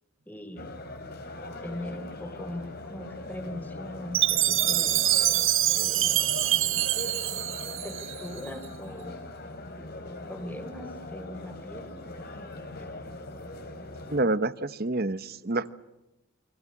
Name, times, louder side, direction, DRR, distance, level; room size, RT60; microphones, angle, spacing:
voice 1, 0.3-0.7 1.6-5.0 5.8-6.2 7.8-9.2 10.3-11.9 12.7-12.9, left 1 dB, 10° left, 7 dB, 3.6 m, -40 dB
sound 1, 0.6-14.2, left 2 dB, 45° left, 3.3 m, -40 dB
Chime, 4.1-8.4, right 13 dB, 60° right, 1.4 m, -25 dB
voice 2, 14.1-15.7, right 2 dB, 45° right, 14 dB, 1.0 m, -28 dB
29.5 x 25.0 x 7.4 m, 0.95 s
head